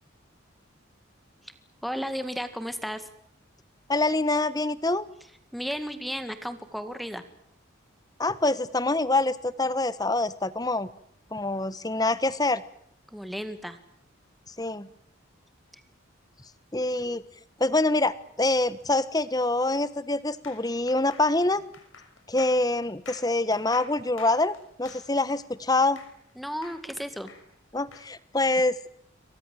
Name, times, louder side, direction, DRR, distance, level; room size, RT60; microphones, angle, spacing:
voice 1, 1.8-3.1 5.5-7.2 13.1-13.8 26.4-27.3, equal, ahead, 10 dB, 2.0 m, -34 dB
voice 2, 3.9-5.1 8.2-10.9 11.3-12.6 14.6-14.9 16.7-17.2 17.6-21.6 22.3-26.0 27.7-28.9, left 2 dB, 20° left, 16 dB, 1.2 m, -25 dB
sound 1, 20.4-26.3 26.6-28.1, left 5 dB, 80° left, 6.3 m, -49 dB
28.5 x 24.0 x 7.8 m, 0.68 s
head